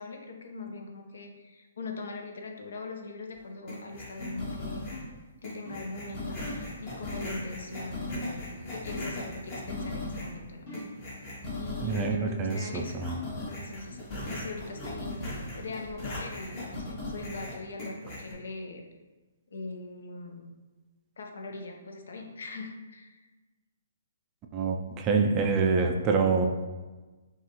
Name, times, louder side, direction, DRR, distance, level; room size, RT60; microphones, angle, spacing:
voice 1, 0.0-4.8 5.4-10.7 11.6-15.2 15.5-18.8 19.5-20.5 21.2-23.3, left 3 dB, 75° left, 3 dB, 0.7 m, -41 dB
sound 1, 3.7-5.1 5.4-10.4 10.7-12.1 12.5-18.3, left 2 dB, 25° left, 1.0 m, -38 dB
sound 2, 4.2-4.5 4.9-5.2 5.6-5.9 6.4-6.7 8.1-8.5 9.0-9.3 9.8-10.1 10.7-11.0, left 2 dB, 45° left, 1.3 m, -40 dB
voice 2, 11.8-13.2 24.5-26.5, right 4 dB, 20° right, 3 dB, 0.3 m, -26 dB
5.7 x 2.4 x 2.9 m, 1.2 s
hypercardioid pair, 165°, 0 cm